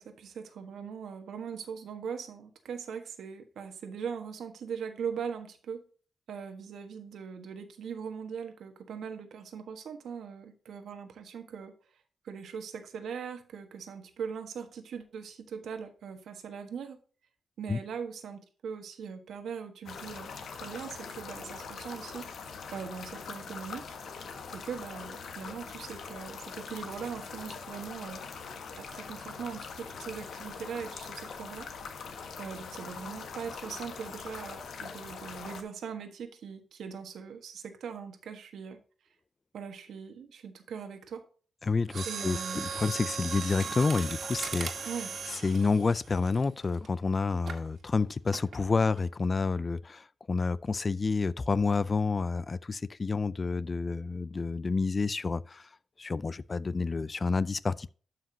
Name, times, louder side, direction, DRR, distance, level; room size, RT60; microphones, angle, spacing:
voice 1, 0.0-5.8 6.3-11.7 12.2-17.0 17.6-22.3 22.7-23.8 24.5-28.2 28.7-31.7 32.4-38.8 39.5-41.2 42.0-42.7 44.8-45.1, right 6 dB, 90° right, 1.3 m, -40 dB
sound 1, 19.9-35.6, left 5 dB, 80° left, 1.3 m, -42 dB
voice 2, 41.6-44.9 45.3-55.7 56.0-57.9, left 4 dB, 35° left, 0.4 m, -29 dB
Mechanisms, 41.9-46.9 47.5-47.7 48.3-48.6 49.0-49.1, right 5 dB, 70° right, 1.8 m, -37 dB
12.0 x 5.8 x 2.8 m
wide cardioid pair, 120°, 0 cm